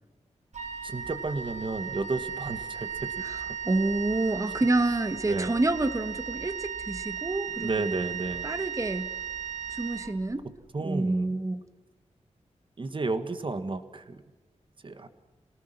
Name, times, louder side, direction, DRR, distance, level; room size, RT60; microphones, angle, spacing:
Wind instrument woodwind instrument, 0.5-10.6, right 7 dB, 70° right, 2.9 m, -36 dB
voice 1, 0.8-3.3 5.2-5.5 7.6-8.5 10.7-11.4 12.8-14.2 14.8-15.1, right 3 dB, 40° right, 9 dB, 1.8 m, -32 dB
voice 2, 3.6-8.0 8.4-9.1 9.7-10.5 10.8-11.6, right 2 dB, 25° right, 10 dB, 1.5 m, -28 dB
28.0 x 19.0 x 6.1 m, 1.2 s
wide cardioid pair, 115°, 12 cm